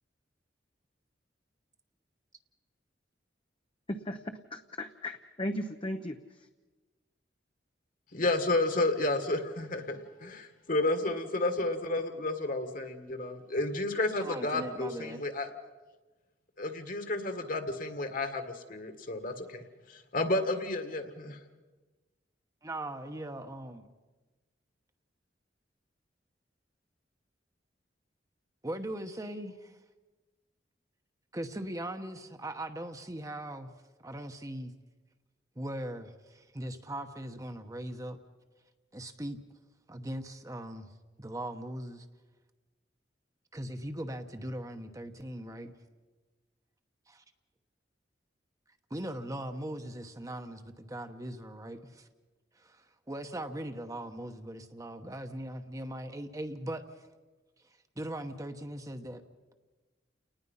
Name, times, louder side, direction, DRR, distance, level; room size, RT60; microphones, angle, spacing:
voice 1, 3.9-6.2, left 1 dB, 30° left, 5 dB, 0.8 m, -36 dB
voice 2, 8.1-15.5 16.6-19.6 19.9-21.4, left 2 dB, 50° left, 7 dB, 2.0 m, -31 dB
voice 3, 14.2-15.2 22.6-23.9 28.6-29.8 31.3-33.7 34.0-34.7 35.6-38.2 38.9-39.4 39.9-40.9 41.2-42.1 43.5-45.7 47.1-47.2 48.9-52.1 52.5-57.1 58.0-59.2, right 1 dB, 20° right, 7 dB, 1.1 m, -40 dB
30.0 x 19.0 x 5.6 m, 1.2 s
head